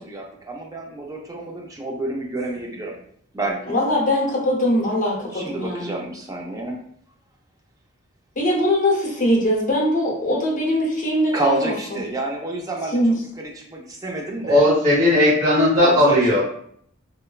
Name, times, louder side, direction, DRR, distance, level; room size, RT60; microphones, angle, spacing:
voice 1, 0.0-3.0 3.3-3.8 5.3-6.8 11.3-13.0 13.4-14.7 15.8-16.4, right 2 dB, 15° right, 0 dB, 0.4 m, -28 dB
voice 2, 3.7-6.0 8.4-11.7 12.9-13.1, left 1 dB, 40° left, -3 dB, 0.8 m, -21 dB
voice 3, 14.4-16.4, left 1 dB, 35° right, -8 dB, 0.9 m, -16 dB
3.0 x 2.1 x 2.3 m, 0.64 s
head